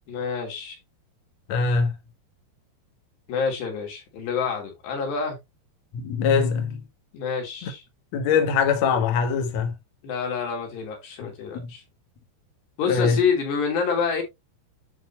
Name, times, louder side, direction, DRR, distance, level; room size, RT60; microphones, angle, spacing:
voice 1, 0.1-0.8 3.3-5.4 7.1-7.8 10.0-11.8 12.8-14.2, left 6 dB, 80° left, 5.3 m, -27 dB
voice 2, 1.5-1.9 5.9-6.8 7.6-7.7 8.1-9.7 11.5-11.7 12.9-13.2, left 5 dB, 55° left, 2.2 m, -22 dB
11.0 x 4.3 x 3.0 m
omnidirectional pair, 4.8 m